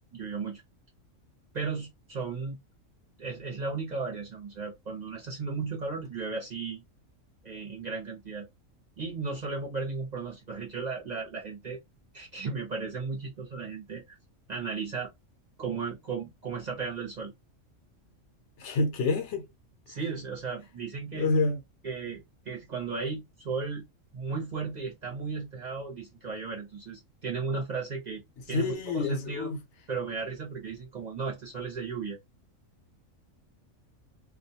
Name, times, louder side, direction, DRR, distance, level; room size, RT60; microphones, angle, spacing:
voice 1, 0.1-0.6 1.5-2.6 3.2-6.8 7.4-8.5 9.0-11.8 12.1-14.0 14.5-15.1 15.6-17.3 19.9-21.3 21.8-23.8 24.1-28.2 28.5-29.6 29.9-32.2, right 4 dB, 40° right, 0.7 m, -35 dB
voice 2, 18.6-19.5 21.1-21.6 28.5-29.6, left 3 dB, 65° left, 0.9 m, -27 dB
2.4 x 2.2 x 2.7 m
omnidirectional pair, 1.4 m